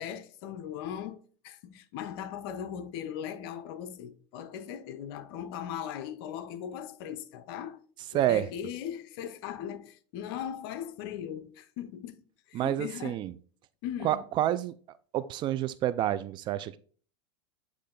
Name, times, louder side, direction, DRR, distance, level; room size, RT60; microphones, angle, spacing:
voice 1, 0.0-7.8 8.1-12.2 12.5-13.2 13.8-14.2, left 9 dB, 60° left, 0.8 m, -39 dB
voice 2, 8.1-8.5 12.5-13.3 14.0-14.7 15.1-16.8, right 12 dB, 35° right, 0.4 m, -28 dB
8.5 x 3.2 x 3.8 m
supercardioid pair, 125°, 14 cm